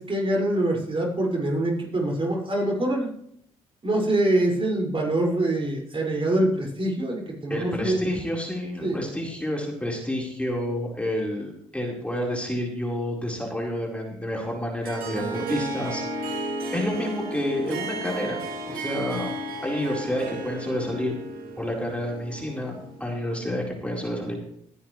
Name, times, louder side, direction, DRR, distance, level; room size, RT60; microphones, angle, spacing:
voice 1, 0.0-3.1 3.8-7.9 8.8-9.0, right 1 dB, 35° right, -2 dB, 5.8 m, -24 dB
voice 2, 7.5-18.4 18.6-19.3 19.6-21.1 21.6-22.7 23.0-24.4, left 1 dB, 10° left, -1 dB, 4.4 m, -29 dB
Harp, 14.8-23.3, right 2 dB, 75° right, 2.5 m, -33 dB
19.5 x 10.5 x 3.3 m, 0.68 s
supercardioid pair, 50°, 15 cm